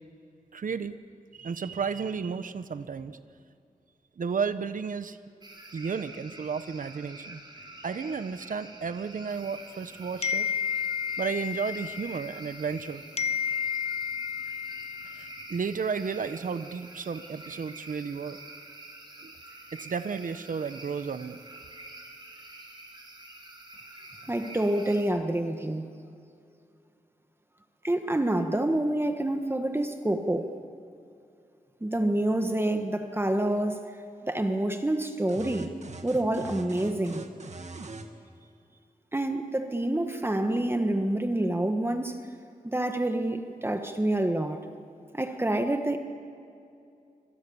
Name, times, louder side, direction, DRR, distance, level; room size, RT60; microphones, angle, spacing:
voice 1, 0.5-1.0 1.3-3.2 4.2-5.2 5.7-7.4 7.8-10.5 11.2-13.0 15.2-18.4 19.2-19.3 19.7-21.4, right 5 dB, 70° right, 11 dB, 1.2 m, -33 dB
sound 1, 5.4-25.0, right 2 dB, 30° right, 4.9 m, -47 dB
sound 2, 10.2-12.8 13.2-15.7, left 7 dB, 45° left, 0.8 m, -32 dB
voice 2, 24.3-25.9 27.8-30.5 31.8-33.9 34.2-35.7 36.0-37.2 39.1-42.2 42.6-44.7 45.1-46.0, right 1 dB, 15° right, 6 dB, 1.6 m, -27 dB
sound 3, 35.3-38.1, right 3 dB, 55° right, 2.0 m, -42 dB
26.5 x 25.0 x 7.2 m, 2.5 s
wide cardioid pair, 95°, 14 cm